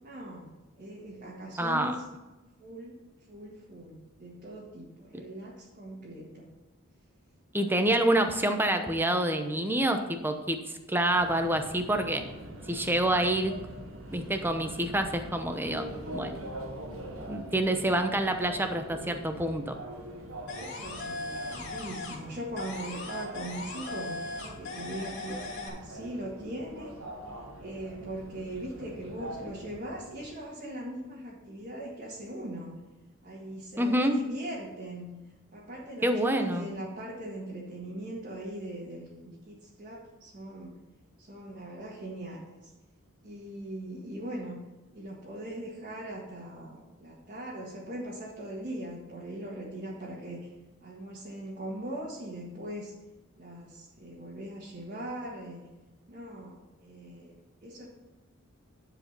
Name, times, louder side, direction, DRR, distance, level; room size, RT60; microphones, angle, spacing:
voice 1, 0.0-2.0 2.6-3.0 3.3-6.5 20.5-26.9 27.6-32.8 33.2-35.2 35.5-40.7 41.2-42.7 43.2-44.6 44.9-50.5 50.8-52.9 53.4-55.7 56.1-57.3 57.6-57.9, right 1 dB, 40° right, -6 dB, 1.7 m, -40 dB
voice 2, 1.6-1.9 7.5-10.6 10.9-12.2 12.7-13.5 14.1-15.8 16.1-16.3 17.3-19.8 33.8-34.2 36.0-36.7, right 1 dB, 10° right, 6 dB, 0.8 m, -27 dB
Subway metro underground, 11.1-30.3, right 1 dB, 90° right, 1.7 m, -44 dB
sound 1, 20.5-22.3 22.6-25.7, left 3 dB, 55° left, 2.7 m, -39 dB
11.0 x 4.9 x 6.0 m, 1.1 s
head